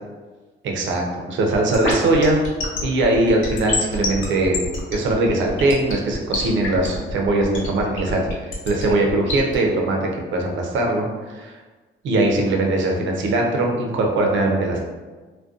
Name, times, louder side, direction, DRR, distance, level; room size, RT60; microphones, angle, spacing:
voice 1, 0.6-2.4 2.8-4.6 4.9-11.6 12.0-14.8, right 2 dB, 70° right, 1 dB, 0.5 m, -21 dB
sound 1, 1.5-9.6, left 2 dB, 75° left, 0.6 m, -27 dB
2.4 x 2.1 x 2.5 m, 1.3 s
cardioid pair, 90°, 20 cm